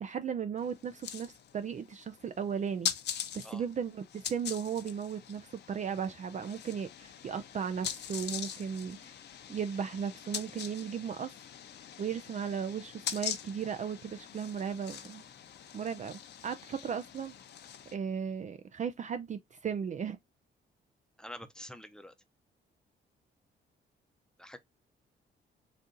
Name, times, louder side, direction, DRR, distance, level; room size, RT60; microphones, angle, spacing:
voice 1, 0.0-2.9 3.3-9.1 9.5-11.3 12.0-15.2 15.7-17.3 17.9-20.2, right 7 dB, 40° right, 0.4 m, -36 dB
sound 1, 0.6-17.9, left 9 dB, 60° left, 0.7 m, -42 dB
voice 2, 21.2-22.1 24.4-24.6, left 1 dB, 5° left, 0.7 m, -46 dB
4.1 x 2.5 x 3.7 m
cardioid pair, 90°, 20 cm